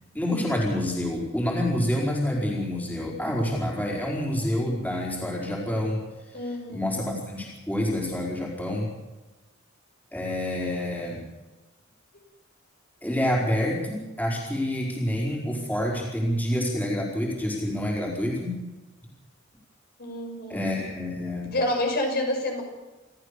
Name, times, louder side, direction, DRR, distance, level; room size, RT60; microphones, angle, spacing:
voice 1, 0.1-6.0 6.4-8.9 10.1-11.2 13.0-18.6 20.5-21.5, left 1 dB, 10° left, -3 dB, 4.8 m, -28 dB
voice 2, 6.3-7.0 20.0-20.8 21.4-22.6, left 1 dB, 50° left, 2 dB, 6.2 m, -28 dB
28.5 x 13.5 x 6.8 m, 1.1 s
head